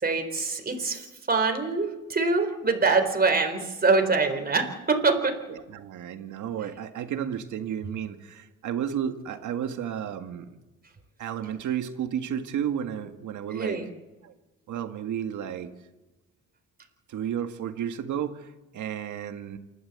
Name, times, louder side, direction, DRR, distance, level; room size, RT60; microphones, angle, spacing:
voice 1, 0.0-5.3 13.5-13.9, right 4 dB, 30° right, 6 dB, 4.0 m, -24 dB
voice 2, 5.5-10.5 11.2-13.8 14.2-14.3 14.7-15.7 17.1-18.5 18.7-19.6, right 9 dB, 75° right, 7 dB, 1.9 m, -32 dB
28.5 x 12.5 x 8.1 m, 1.1 s
cardioid pair, 90°, 30 cm